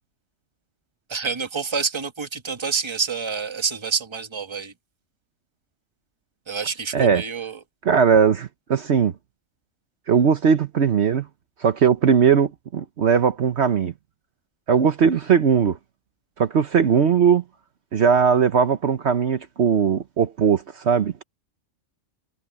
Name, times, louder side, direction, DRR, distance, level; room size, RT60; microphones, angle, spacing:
voice 1, 1.1-4.7 6.5-7.6, right 5 dB, 20° right, 1.3 m, -27 dB
voice 2, 6.9-7.2 7.8-9.1 10.1-11.3 11.6-13.9 14.7-15.8 16.4-17.4 17.9-21.2, right 7 dB, 60° right, 1.1 m, -19 dB
omnidirectional pair, 1.3 m